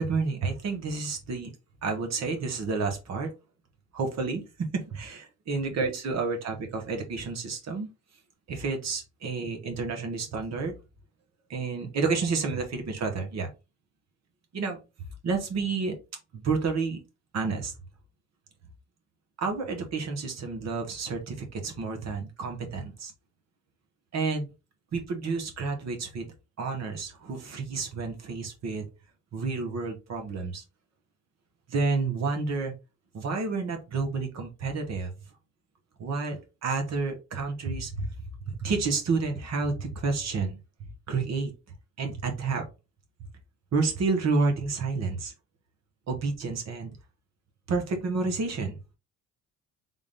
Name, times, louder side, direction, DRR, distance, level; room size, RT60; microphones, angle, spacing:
voice 1, 0.0-1.5 1.8-3.3 3.9-7.9 8.5-10.8 11.5-13.5 14.5-14.8 15.2-15.9 16.3-17.0 17.3-17.7 19.4-23.1 24.1-24.5 24.9-26.3 26.6-28.8 29.3-30.6 31.7-32.7 33.1-35.1 36.0-38.1 38.4-41.5 42.0-42.7 43.7-45.3 46.1-46.9 47.7-48.8, right 4 dB, 60° right, 4 dB, 1.2 m, -30 dB
3.7 x 2.5 x 3.6 m, 0.28 s
cardioid pair, 90°, 30 cm